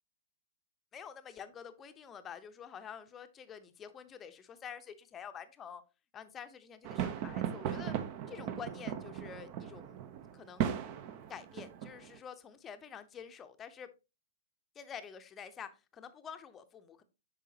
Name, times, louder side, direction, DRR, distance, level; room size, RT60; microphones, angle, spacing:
voice 1, 0.9-5.8 6.1-7.9 8.3-10.0 10.3-10.7 11.3-13.9 14.7-17.0, left 7 dB, 20° left, 10 dB, 0.7 m, -48 dB
sound 1, 6.8-12.2, right 9 dB, 40° right, 0.7 m, -37 dB
8.3 x 5.6 x 2.8 m, 0.28 s
figure-of-eight pair, 110°, 0 cm